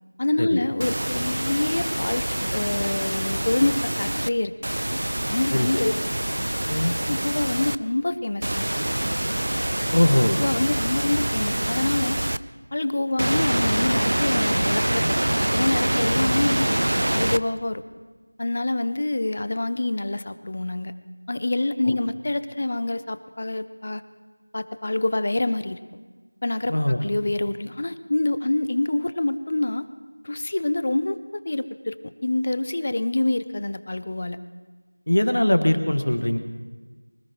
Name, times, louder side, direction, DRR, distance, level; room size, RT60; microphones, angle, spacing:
voice 1, 0.2-4.5 5.3-5.9 7.1-8.7 10.4-12.2 12.7-16.7 17.1-17.8 18.4-20.9 21.3-24.0 24.5-25.8 26.4-26.7 27.0-29.9 30.2-34.4, left 2 dB, 20° left, 13 dB, 0.4 m, -26 dB
sound 1, 0.8-4.3 4.6-7.8 8.4-12.4 13.2-17.4, right 1 dB, 45° right, 0.4 m, -25 dB
voice 2, 5.5-5.8 6.7-6.9 9.9-10.4 26.7-27.0 35.1-36.4, left 1 dB, 50° left, 7 dB, 1.4 m, -21 dB
24.0 x 18.0 x 3.0 m, 1.3 s
figure-of-eight pair, 180°, 0 cm